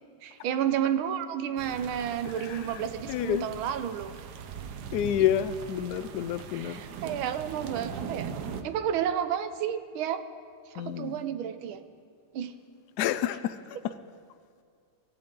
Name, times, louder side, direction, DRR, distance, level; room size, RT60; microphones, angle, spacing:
voice 1, 0.2-4.1 6.5-8.3 8.6-10.2 10.7-11.8 12.3-12.5 13.7-13.8, right 9 dB, 80° right, 1.6 m, -31 dB
sound 1, 1.6-8.6, right 7 dB, 60° right, 1.2 m, -40 dB
voice 2, 2.5-2.8 3.1-3.5 4.9-6.8 10.8-11.2 13.0-13.9, left 11 dB, 90° left, 0.8 m, -29 dB
24.5 x 14.0 x 3.8 m
omnidirectional pair, 2.3 m